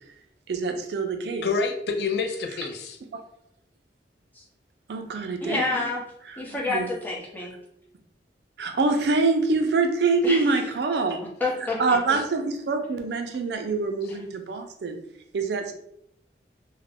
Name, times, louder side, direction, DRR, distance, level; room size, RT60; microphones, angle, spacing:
voice 1, 0.5-1.5 4.9-5.6 6.3-6.4 6.7-6.9 8.6-11.2 11.8-15.0 15.3-15.7, right 3 dB, 70° right, 6 dB, 0.4 m, -25 dB
voice 2, 1.4-3.0 5.5-5.9, left 4 dB, 70° left, 5 dB, 0.4 m, -28 dB
voice 3, 5.4-6.0 6.4-7.5 10.2-10.5 11.4-12.0, left 2 dB, 10° left, -4 dB, 0.6 m, -28 dB
2.3 x 2.0 x 3.4 m, 0.74 s
head